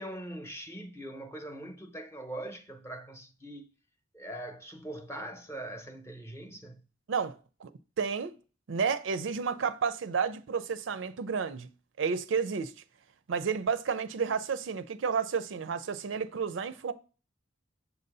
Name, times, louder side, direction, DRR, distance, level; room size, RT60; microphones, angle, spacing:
voice 1, 0.0-3.7 4.1-6.8, right 1 dB, 15° left, 0.8 m, -42 dB
voice 2, 8.0-8.3 8.7-11.7 12.0-12.7 13.3-16.9, right 6 dB, 80° right, 0.5 m, -31 dB
7.0 x 2.7 x 5.3 m
head